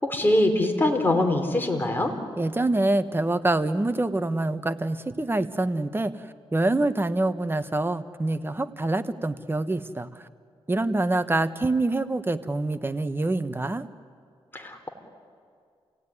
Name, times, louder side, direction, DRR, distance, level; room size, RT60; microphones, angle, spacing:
voice 1, 0.0-2.1 14.5-14.9, left 1 dB, 20° left, 3 dB, 3.9 m, -23 dB
voice 2, 2.4-6.1 6.5-10.2 10.7-13.9, right 2 dB, 20° right, 10 dB, 1.2 m, -25 dB
28.0 x 17.5 x 9.8 m, 2.2 s
cardioid pair, 70°, 10 cm